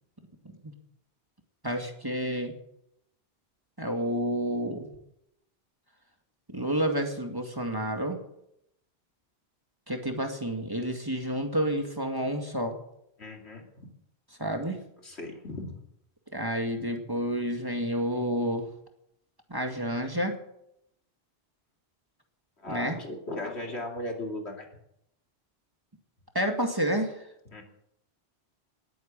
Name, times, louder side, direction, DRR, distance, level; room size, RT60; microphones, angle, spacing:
voice 1, 1.6-2.5 3.8-4.9 6.5-8.2 9.9-12.8 14.4-14.8 16.3-18.7 19.5-20.4 22.7-23.0 26.3-27.1, equal, 20° right, 4 dB, 2.0 m, -29 dB
voice 2, 13.2-13.9 14.6-14.7 15.0-15.8 22.6-24.7 27.5-27.6, left 1 dB, 75° left, 2 dB, 3.1 m, -37 dB
19.5 x 9.3 x 7.5 m, 0.77 s
omnidirectional pair, 1.1 m